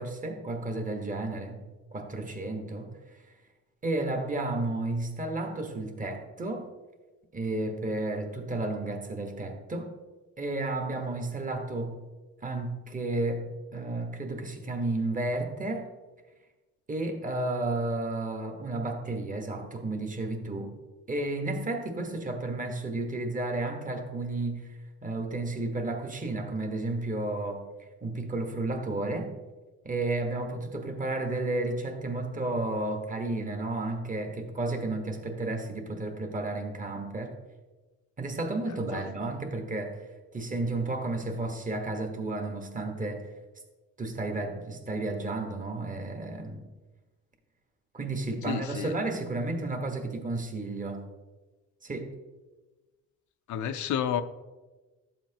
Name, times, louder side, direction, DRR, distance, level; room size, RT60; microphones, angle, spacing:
voice 1, 0.0-1.6 1.9-2.9 3.8-6.7 7.3-10.0 10.4-12.0 12.4-15.9 16.9-20.8 21.1-27.7 28.0-29.3 29.8-37.4 38.2-40.1 40.3-43.3 44.0-46.6 47.9-51.0 51.8-52.2, right 2 dB, 25° right, 4 dB, 1.3 m, -32 dB
voice 2, 48.5-48.9 53.5-54.2, left 9 dB, 75° left, 10 dB, 0.6 m, -30 dB
11.5 x 7.3 x 2.9 m, 1.2 s
cardioid pair, 90°, 30 cm